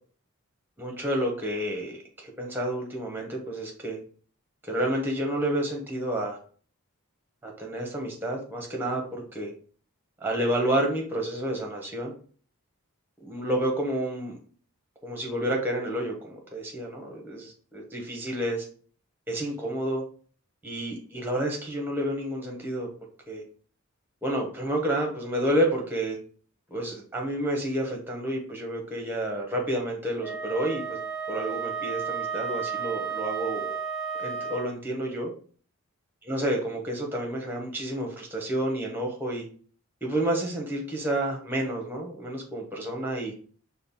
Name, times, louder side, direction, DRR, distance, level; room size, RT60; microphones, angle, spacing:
voice 1, 0.8-4.0 4.6-6.4 7.4-9.5 10.2-12.1 13.2-14.4 15.0-18.7 19.3-20.0 20.6-22.9 23.3-23.4 24.2-26.2 26.7-31.0 31.3-33.8 34.2-35.3 36.2-39.5 40.0-43.3, right 1 dB, 10° right, 1 dB, 1.0 m, -30 dB
Wind instrument woodwind instrument, 30.2-34.8, right 6 dB, 40° left, 2.1 m, -33 dB
5.2 x 2.2 x 4.0 m, 0.43 s
head